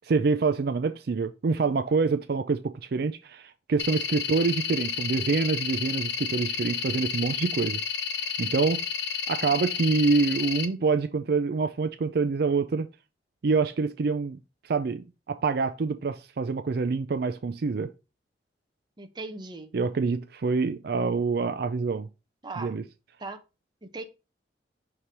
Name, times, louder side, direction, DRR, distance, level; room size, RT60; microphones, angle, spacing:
voice 1, 0.0-7.8 8.2-8.8 9.3-12.9 13.4-14.4 14.6-17.9 19.7-22.1 22.6-22.8, right 4 dB, 60° right, 0.4 m, -26 dB
sound 1, 3.8-10.7, left 6 dB, 75° left, 0.9 m, -31 dB
voice 2, 19.0-19.7 22.4-22.8 23.2-23.4 23.8-24.0, right 3 dB, 25° right, 0.8 m, -38 dB
5.9 x 3.3 x 5.3 m
head